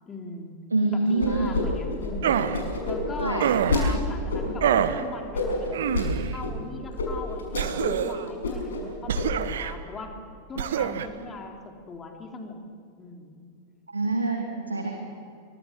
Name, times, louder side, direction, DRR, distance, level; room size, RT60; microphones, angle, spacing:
voice 1, 0.1-0.5 0.9-2.4 2.9-10.2 10.5-12.6 13.0-13.5, left 3 dB, 20° left, 3 dB, 3.5 m, -39 dB
voice 2, 0.7-1.6 3.2-3.4 13.9-14.9, right 2 dB, 80° right, 3 dB, 2.3 m, -26 dB
sound 1, 1.2-1.6 1.9-3.8 4.3-4.7 5.3-6.1 6.4-6.5 7.0-7.1 7.4-8.0 8.3-8.8 9.1-9.5, left 4 dB, 65° left, 6.2 m, -28 dB
sound 2, 2.2-2.6 3.4-4.0 4.6-5.0 5.7-6.4 7.6-8.3 9.1-9.7 10.6-11.1, right 9 dB, 60° right, 1.2 m, -26 dB
26.0 x 23.5 x 7.5 m, 2.4 s
figure-of-eight pair, 90°, 0 cm